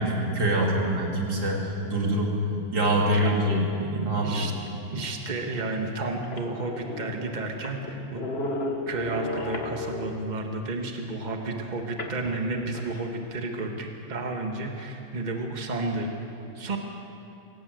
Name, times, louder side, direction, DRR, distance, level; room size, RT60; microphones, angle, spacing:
voice 1, 0.0-2.4 2.7-3.7 4.0-4.5, right 1 dB, 90° right, -1 dB, 3.6 m, -25 dB
voice 2, 2.3-2.8 3.1-3.4 3.8-4.5 4.9-8.2 8.9-16.8, right 2 dB, 30° right, 2 dB, 1.8 m, -32 dB
sound 1, 5.3-5.4 5.9-6.0 6.2-10.3 12.0-13.1, left 2 dB, 40° left, 1.7 m, -34 dB
25.0 x 17.0 x 7.9 m, 2.9 s
omnidirectional pair, 1.7 m